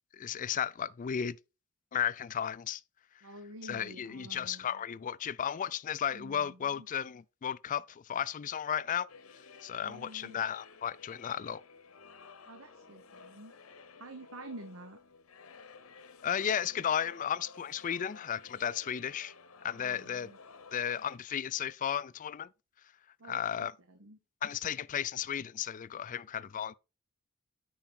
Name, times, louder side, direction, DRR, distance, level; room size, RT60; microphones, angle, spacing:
voice 1, 0.1-1.4 1.9-2.8 3.6-9.1 9.6-11.6 16.2-19.3 19.6-20.3 20.7-22.5 23.2-23.7 24.4-26.7, left 9 dB, 40° left, 0.3 m, -34 dB
voice 2, 3.2-4.8 6.1-6.9 9.8-10.4 12.5-13.5 14.0-15.0 19.7-20.4 23.2-24.2, right 1 dB, 75° right, 1.0 m, -49 dB
sound 1, 9.1-21.2, left 4 dB, 80° left, 0.9 m, -54 dB
9.0 x 4.8 x 4.3 m
head